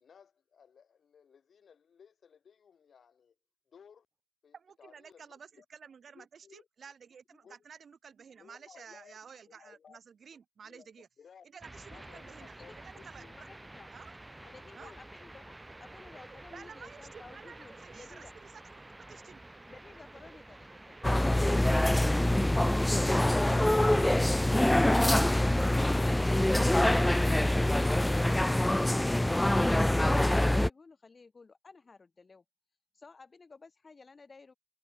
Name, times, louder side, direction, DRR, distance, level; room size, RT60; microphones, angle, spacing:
voice 1, 0.0-3.4 3.7-4.1 4.4-5.7 6.1-6.7 7.3-7.6 8.4-9.2 9.5-10.0 10.6-11.5 11.9-13.3 14.4-15.0, left 7 dB, 80° left, 3.6 m, -58 dB
voice 2, 4.5-11.1 11.4-12.6 12.8-13.3 13.9-14.1 14.7-14.9 16.5-19.4, right 6 dB, 70° right, 2.9 m, -52 dB
sound 1, 11.6-23.3, right 1 dB, 15° right, 3.4 m, -51 dB
sound 2, 12.0-29.8, right 4 dB, 45° right, 2.6 m, -59 dB
voice 3, 13.2-13.9 14.5-18.3 19.7-22.3 28.9-32.4 32.9-34.6, left 4 dB, 45° left, 3.1 m, -55 dB
sound 3, 21.0-30.7, left 1 dB, 10° left, 0.3 m, -25 dB
wide cardioid pair, 95°, 0 cm